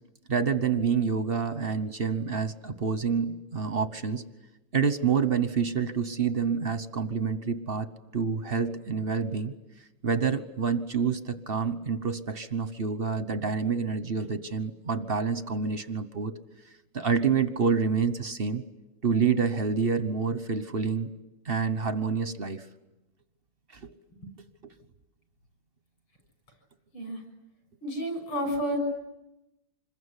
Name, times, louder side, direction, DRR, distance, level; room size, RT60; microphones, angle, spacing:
voice 1, 0.3-4.2 4.7-7.9 8.1-9.5 10.0-16.3 16.9-18.6 19.0-21.1 21.5-22.6 23.8-23.9 24.6-24.7, right 5 dB, 40° right, 12 dB, 0.8 m, -27 dB
voice 2, 27.8-28.8, equal, 75° left, 5 dB, 7.5 m, -30 dB
26.5 x 21.5 x 9.9 m, 0.93 s
omnidirectional pair, 2.4 m